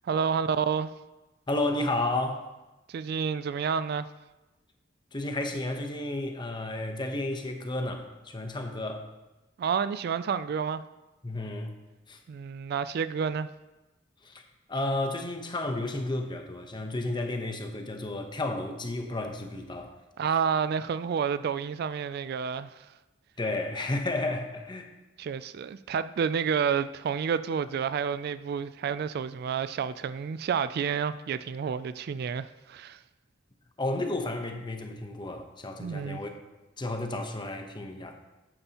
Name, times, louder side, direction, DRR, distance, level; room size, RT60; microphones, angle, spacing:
voice 1, 0.0-0.9 2.9-4.1 9.6-10.8 12.3-13.5 20.2-22.8 25.2-33.0 35.8-36.2, right 6 dB, 55° right, 0.3 m, -29 dB
voice 2, 1.5-2.5 5.1-9.1 11.2-11.7 12.1-12.2 14.2-14.4 14.7-19.9 23.4-24.9 33.8-36.3 36.8-38.2, left 2 dB, 25° left, 0.9 m, -32 dB
11.0 x 8.9 x 2.9 m
head